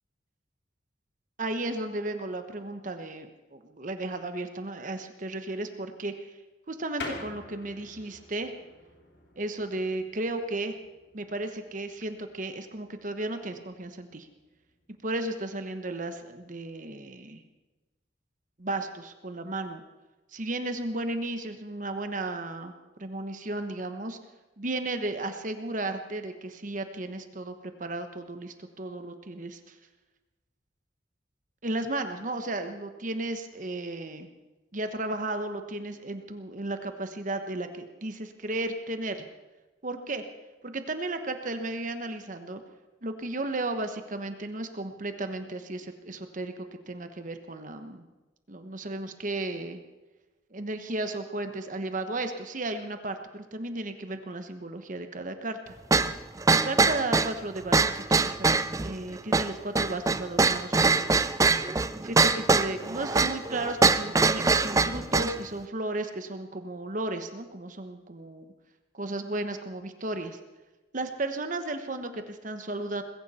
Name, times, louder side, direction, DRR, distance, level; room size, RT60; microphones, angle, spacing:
voice 1, 1.4-6.3 6.7-8.5 9.4-10.7 11.1-14.3 15.0-17.4 18.6-19.8 20.3-22.7 23.0-24.2 24.6-29.8 31.6-34.3 34.7-39.2 39.8-40.2 40.6-42.6 43.0-46.5 46.9-48.0 48.5-49.8 50.5-55.8 56.6-58.5 58.8-61.1 62.0-68.5 68.9-70.4 70.9-73.0, right 2 dB, 45° right, 7 dB, 1.1 m, -34 dB
sound 1, 7.0-17.2, left 3 dB, 60° left, 2.9 m, -48 dB
sound 2, 55.9-65.4, right 3 dB, 20° right, 0.4 m, -23 dB
20.0 x 16.5 x 4.3 m, 1.1 s
head